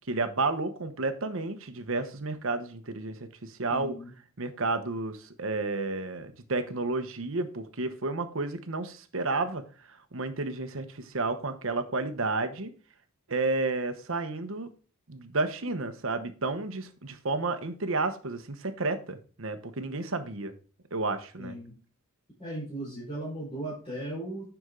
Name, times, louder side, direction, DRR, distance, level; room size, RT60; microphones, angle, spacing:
voice 1, 0.1-3.9 4.4-9.6 9.9-12.7 13.3-14.7 15.1-20.5 20.9-21.5, right 3 dB, 65° right, 1.1 m, -31 dB
voice 2, 3.7-4.1 21.4-21.7 22.4-24.4, right 1 dB, 25° left, 4.8 m, -37 dB
9.7 x 6.1 x 3.8 m
head